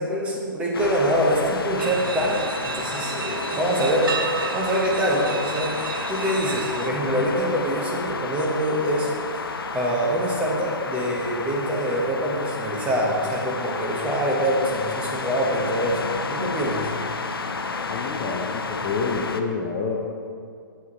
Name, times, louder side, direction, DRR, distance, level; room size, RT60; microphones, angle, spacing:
voice 1, 0.0-5.8 6.1-9.4 9.7-16.9, equal, 10° right, -3 dB, 1.1 m, -25 dB
sound 1, 0.7-19.4, left 4 dB, 75° left, 0.6 m, -31 dB
sound 2, 1.8-6.9, right 6 dB, 65° right, 0.5 m, -32 dB
voice 2, 17.9-20.0, left 4 dB, 20° left, -2 dB, 0.6 m, -28 dB
8.0 x 7.1 x 3.1 m, 2.2 s
figure-of-eight pair, 135°, 12 cm